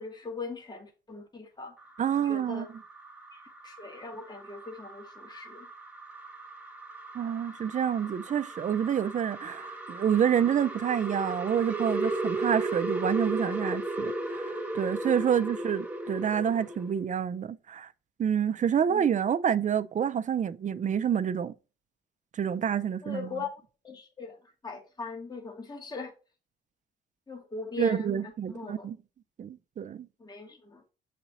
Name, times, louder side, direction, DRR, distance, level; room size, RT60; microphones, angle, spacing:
voice 1, 0.0-1.7 2.2-2.7 3.3-5.7 18.9-19.1 23.0-23.5 23.8-24.4 24.6-26.1 27.3-28.9 30.2-30.8, left 4 dB, 20° left, 1.3 m, -40 dB
sound 1, 1.8-16.9, right 2 dB, 5° right, 1.3 m, -36 dB
voice 2, 2.0-2.7 7.1-17.9 18.2-21.5 22.3-23.4 27.8-29.0 29.4-30.1, right 8 dB, 40° right, 0.5 m, -28 dB
6.9 x 4.1 x 4.1 m
cardioid pair, 90°, 20 cm